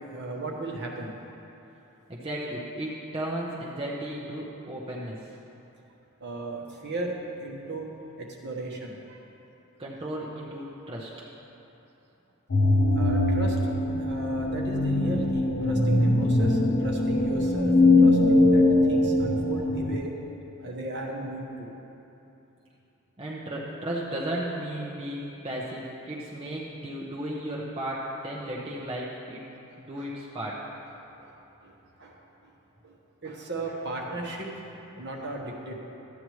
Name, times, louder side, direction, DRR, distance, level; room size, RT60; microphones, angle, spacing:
voice 1, 0.1-1.1 6.2-7.9 8.2-9.2 13.0-20.1 20.6-21.7 30.0-30.1 31.2-31.3 31.6-31.7 32.0-32.2 32.8-33.0 33.2-34.5 34.9-35.8, right 2 dB, 50° right, -1 dB, 1.1 m, -36 dB
voice 2, 2.1-5.3 9.8-11.1 23.2-29.5 29.8-30.6, right 1 dB, 25° right, -5 dB, 0.7 m, -34 dB
sound 1, 12.5-20.0, left 2 dB, 85° left, 0.8 m, -22 dB
13.0 x 8.7 x 3.1 m, 3.0 s
head